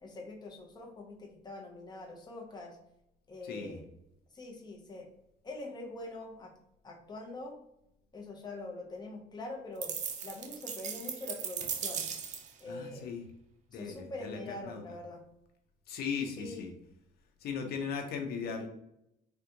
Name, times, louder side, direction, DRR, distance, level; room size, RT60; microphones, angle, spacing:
voice 1, 0.0-2.8 3.3-3.8 4.3-5.1 5.4-6.5 6.8-7.6 8.1-9.9 10.2-12.1 12.6-13.1 13.7-15.2 16.4-16.6, left 2 dB, 25° left, 1 dB, 0.7 m, -44 dB
voice 2, 3.4-3.8 12.7-13.2 13.7-14.8 15.9-16.7 17.4-18.7, left 6 dB, 65° left, 4 dB, 0.7 m, -38 dB
sound 1, 9.8-12.6, right 7 dB, 45° right, 0.5 m, -37 dB
3.4 x 2.4 x 2.8 m, 0.80 s
cardioid pair, 110°, 17 cm